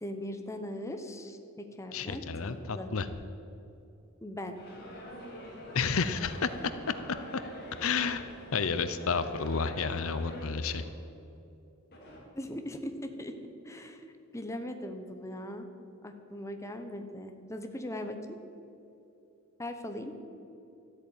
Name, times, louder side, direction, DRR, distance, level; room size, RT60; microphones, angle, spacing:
voice 1, 0.0-2.9 4.2-4.6 12.4-13.3 13.6-14.0 14.3-15.7 16.0-18.4 19.6-20.2, left 1 dB, 15° left, 6 dB, 1.0 m, -39 dB
voice 2, 1.9-3.1 5.7-6.5 7.8-8.2 8.5-10.8, left 5 dB, 65° left, 11 dB, 0.7 m, -30 dB
sound 1, 4.5-10.8 11.9-12.2, equal, 45° left, 3.6 m, -45 dB
13.0 x 8.7 x 8.9 m, 2.7 s
head